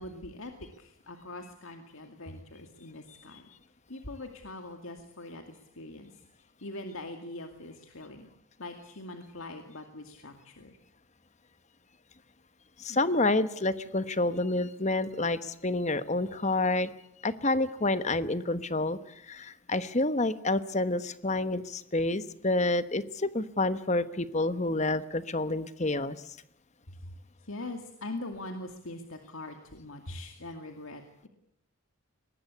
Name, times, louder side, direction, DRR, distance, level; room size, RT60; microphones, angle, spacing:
voice 1, 0.0-3.5 3.9-8.3 8.6-10.8 12.9-13.1 26.9-27.1 27.4-31.3, left 2 dB, 75° left, 5 dB, 2.3 m, -42 dB
voice 2, 12.8-16.9 17.2-19.0 19.3-26.2, left 2 dB, 35° left, 13 dB, 1.1 m, -28 dB
23.0 x 20.0 x 8.3 m, 0.77 s
head